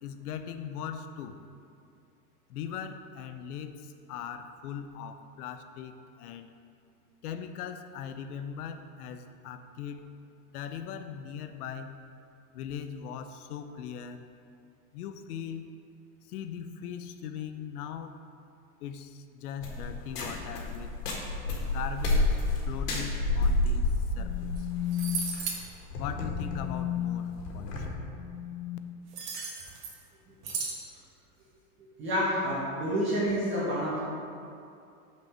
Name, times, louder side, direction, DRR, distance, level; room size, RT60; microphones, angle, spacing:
voice 1, 0.0-1.4 2.5-6.5 7.2-10.0 10.5-12.0 12.5-14.3 14.9-15.7 16.3-18.1 18.8-20.9 21.6-22.4 22.7-23.9 24.2-25.3 26.0-28.8, left 9 dB, 70° left, 9 dB, 0.7 m, -38 dB
sound 1, 19.6-27.9, left 2 dB, 90° left, 1.7 m, -30 dB
sound 2, 24.6-24.7 24.9-25.6 29.1-30.0 30.4-30.8, right 5 dB, 85° right, 1.6 m, -35 dB
voice 2, 32.0-34.0, equal, 25° right, -8 dB, 1.5 m, -28 dB
6.1 x 4.5 x 6.1 m, 2.5 s
supercardioid pair, 150°, 46 cm